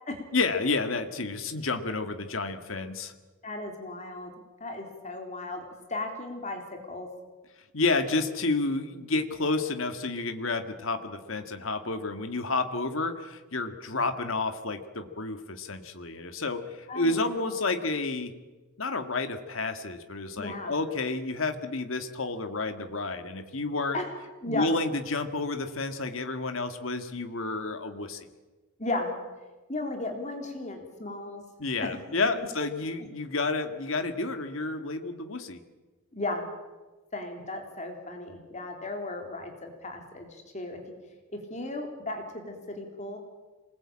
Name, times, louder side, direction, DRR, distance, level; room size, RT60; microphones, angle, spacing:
voice 1, 0.3-3.1 7.7-18.3 18.8-24.0 24.5-28.3 31.6-35.6, left 3 dB, 70° left, 7 dB, 1.8 m, -30 dB
voice 2, 3.4-4.3 4.6-6.6 6.9-7.1 16.9-17.7 20.4-20.7 23.9-24.1 24.4-24.7 28.8-29.1 29.7-31.4 36.1-36.5 37.1-40.8 41.3-43.2, left 2 dB, 35° left, 4 dB, 3.5 m, -35 dB
26.5 x 20.5 x 8.8 m, 1.2 s
head